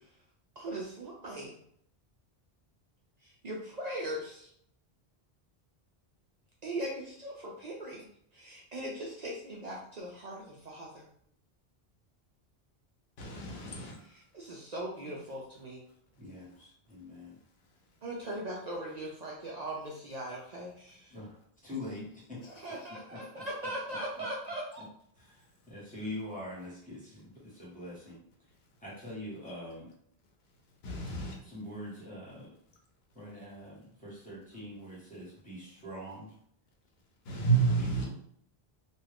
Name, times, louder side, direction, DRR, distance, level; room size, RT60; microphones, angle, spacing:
voice 1, 0.6-1.6 3.2-4.5 6.6-8.1 8.3-11.0 14.1-15.8 18.0-21.2 22.4-24.8, right 1 dB, 50° right, -3 dB, 0.5 m, -40 dB
voice 2, 13.2-14.0 30.8-31.4 37.2-38.1, right 4 dB, 80° left, 1 dB, 0.9 m, -29 dB
voice 3, 16.2-17.4 21.1-21.3 21.6-22.4 23.1-23.4 23.9-24.0 25.2-28.2 28.8-29.9 31.4-32.5 33.1-36.3 37.8-38.1, left 1 dB, 10° left, -7 dB, 1.2 m, -44 dB
2.6 x 2.3 x 3.4 m, 0.67 s
omnidirectional pair, 1.0 m